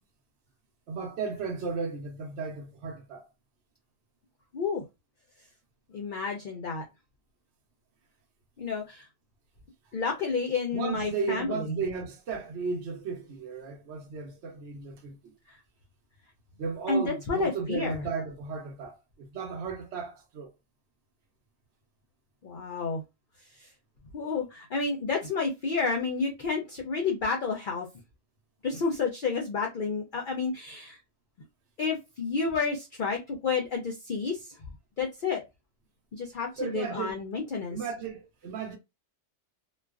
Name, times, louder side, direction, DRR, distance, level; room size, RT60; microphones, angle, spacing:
voice 1, 0.9-3.3 10.7-15.3 16.6-20.5 36.6-37.2 37.7-38.8, right 5 dB, 70° right, 0.9 m, -35 dB
voice 2, 5.9-6.8 8.6-9.1 9.9-11.8 16.9-18.0 22.4-23.0 23.6-23.7 24.1-27.9 28.6-31.0 31.8-34.5 35.0-35.4 36.1-37.8, left 4 dB, 60° left, 0.5 m, -30 dB
2.4 x 2.2 x 2.3 m
omnidirectional pair, 1.3 m